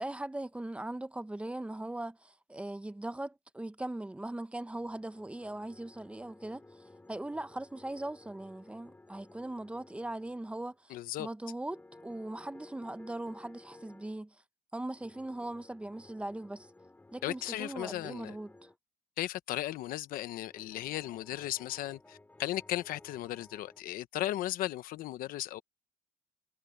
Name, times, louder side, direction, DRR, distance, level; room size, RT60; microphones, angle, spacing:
voice 1, 0.0-14.4 14.7-16.7 17.1-18.7, right 1 dB, 10° right, 0.7 m, -40 dB
sound 1, 4.7-10.8 11.7-14.2 15.0-18.8 20.1-23.8, left 2 dB, 10° left, 3.3 m, -57 dB
voice 2, 10.9-11.3 17.2-18.3 19.2-25.6, left 14 dB, 85° left, 1.0 m, -36 dB
cardioid pair, 145°, 14 cm